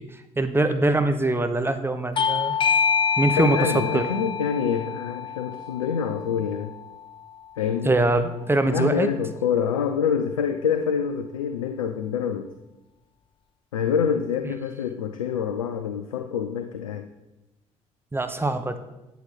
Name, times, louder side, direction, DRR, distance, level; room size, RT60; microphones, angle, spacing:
voice 1, 0.0-2.6 3.2-4.1 7.8-9.1 18.1-18.8, right 2 dB, 15° right, 8 dB, 1.1 m, -23 dB
Bell / Doorbell, 2.2-7.3, left 6 dB, 30° left, 0.4 m, -27 dB
voice 2, 3.4-6.7 7.6-7.9 8.6-12.5 13.7-17.1, left 7 dB, 80° left, 9 dB, 0.5 m, -26 dB
11.5 x 8.3 x 4.2 m, 1.0 s
figure-of-eight pair, 50°, 17 cm